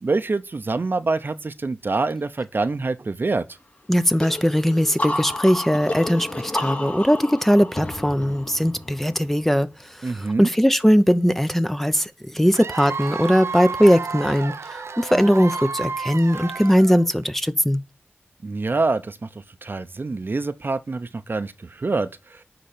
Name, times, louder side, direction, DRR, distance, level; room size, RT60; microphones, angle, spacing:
voice 1, 0.0-3.4 10.0-10.5 15.1-15.2 18.4-19.3 19.6-22.4, right 3 dB, 50° right, 0.7 m, -26 dB
voice 2, 3.9-9.7 10.0-17.8, equal, 5° left, 0.6 m, -20 dB
sound 1, 4.2-9.7, left 1 dB, 35° left, 4.3 m, -31 dB
Cheering / Applause / Crowd, 12.5-17.2, right 5 dB, 90° right, 0.6 m, -31 dB
10.0 x 3.8 x 6.9 m
wide cardioid pair, 60°, 4 cm